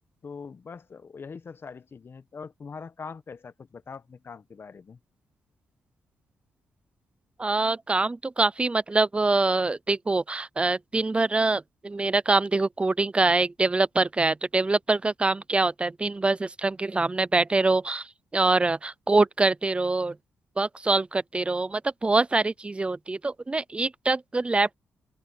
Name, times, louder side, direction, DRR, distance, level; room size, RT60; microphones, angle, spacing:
voice 1, 0.2-5.0, left 5 dB, 45° left, 1.1 m, -42 dB
voice 2, 7.4-20.2 20.6-24.8, right 3 dB, 20° right, 0.4 m, -24 dB
cardioid pair, 75°, 5 cm